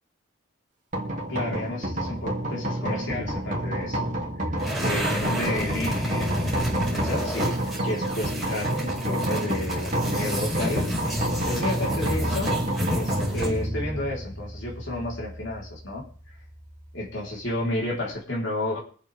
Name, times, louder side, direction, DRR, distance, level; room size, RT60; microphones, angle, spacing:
sound 1, 0.9-18.1, right 1 dB, 40° right, 2.9 m, -29 dB
voice 1, 1.3-4.0 4.8-7.6 7.8-16.0 16.9-18.8, left 1 dB, 60° left, -3 dB, 4.3 m, -32 dB
sound 2, 4.6-13.7, equal, ahead, 5.4 m, -31 dB
24.0 x 8.9 x 3.6 m, 0.43 s
head